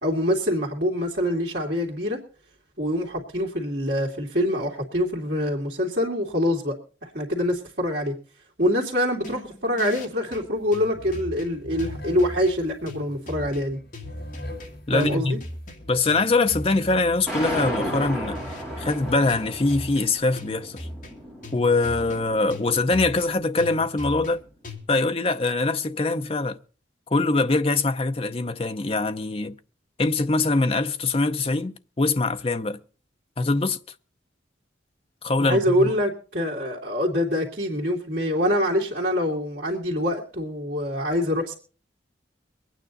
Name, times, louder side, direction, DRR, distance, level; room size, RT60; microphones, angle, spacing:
voice 1, 0.0-2.2 2.8-6.8 7.0-8.2 8.6-13.8 14.9-15.4 35.4-41.5, equal, 60° right, 2.5 m, -25 dB
sound 1, 9.2-24.8, left 1 dB, 45° left, 2.5 m, -40 dB
sound 2, 10.6-10.7 10.9-20.2, left 1 dB, 65° left, 4.7 m, -41 dB
voice 2, 14.9-15.4 15.9-18.4 18.8-20.9 21.5-24.4 24.9-26.6 27.1-29.5 30.0-32.8 33.4-33.8 35.2-35.9, left 3 dB, 30° left, 0.6 m, -23 dB
sound 3, 17.3-23.4, equal, 5° right, 3.6 m, -34 dB
23.5 x 9.2 x 4.0 m
head